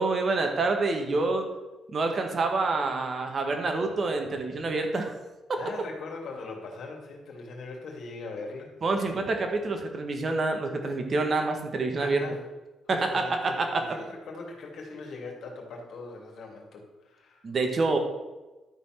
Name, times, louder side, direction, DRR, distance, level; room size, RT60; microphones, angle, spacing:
voice 1, 0.0-1.4 1.9-5.1 8.8-12.2 12.9-13.8 17.4-18.0, right 3 dB, 45° right, 4 dB, 1.8 m, -27 dB
voice 2, 5.5-8.7 12.0-12.4 12.9-17.5, left 3 dB, 65° left, 1 dB, 2.6 m, -40 dB
12.0 x 4.5 x 6.0 m, 1.1 s
cardioid pair, 90°, 0 cm